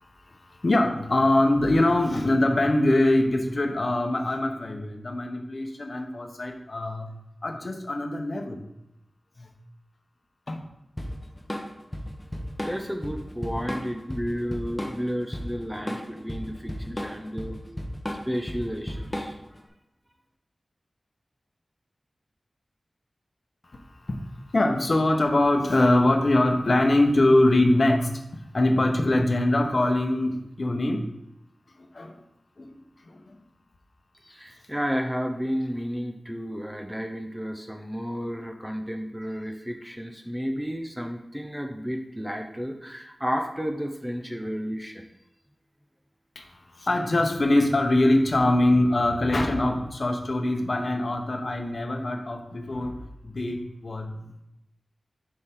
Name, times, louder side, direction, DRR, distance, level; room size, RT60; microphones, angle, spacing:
voice 1, 0.6-7.1 7.4-8.7 9.4-9.5 10.5-10.6 24.1-24.2 24.5-28.2 28.5-31.1 31.9-32.1 32.6-32.7 33.1-33.3 46.4-46.5 46.8-54.4, left 1 dB, 55° left, 4 dB, 0.9 m, -23 dB
Drum kit / Drum, 11.0-19.6, left 1 dB, 15° left, 1.0 m, -34 dB
voice 2, 12.6-17.6 18.2-19.3 34.3-45.0, equal, 10° right, 4 dB, 0.6 m, -32 dB
6.8 x 4.8 x 3.7 m, 0.86 s
wide cardioid pair, 70°, 0 cm